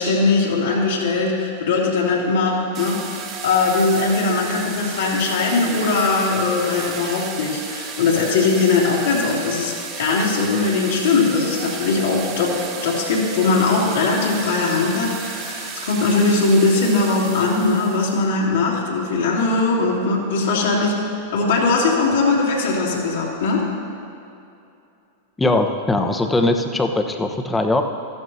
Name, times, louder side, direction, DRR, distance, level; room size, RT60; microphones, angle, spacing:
voice 1, 0.0-20.9 21.3-23.7, left 3 dB, 70° left, -5 dB, 2.8 m, -20 dB
sound 1, 2.7-18.2, right 6 dB, 40° right, 1.6 m, -33 dB
voice 2, 25.4-27.8, left 2 dB, 10° left, 5 dB, 0.9 m, -20 dB
15.0 x 12.5 x 2.7 m, 2.6 s
hypercardioid pair, 100°, 0 cm